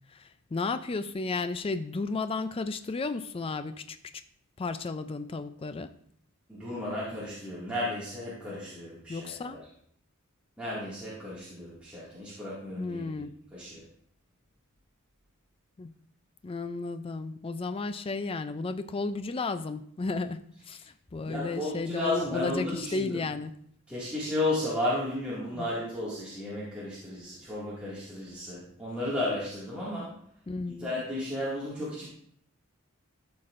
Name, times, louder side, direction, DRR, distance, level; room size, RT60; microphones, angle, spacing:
voice 1, 0.1-4.0 4.6-5.9 9.1-9.6 12.8-13.3 15.8-15.9 16.4-20.8 21.1-23.5 25.6-25.7 30.5-30.9, left 3 dB, 25° left, 11 dB, 0.3 m, -33 dB
voice 2, 6.5-9.3 10.6-13.2 13.5-13.8 21.2-23.2 23.9-30.2 30.8-32.1, left 1 dB, 5° right, -11 dB, 2.1 m, -33 dB
13.5 x 5.8 x 2.5 m, 0.67 s
head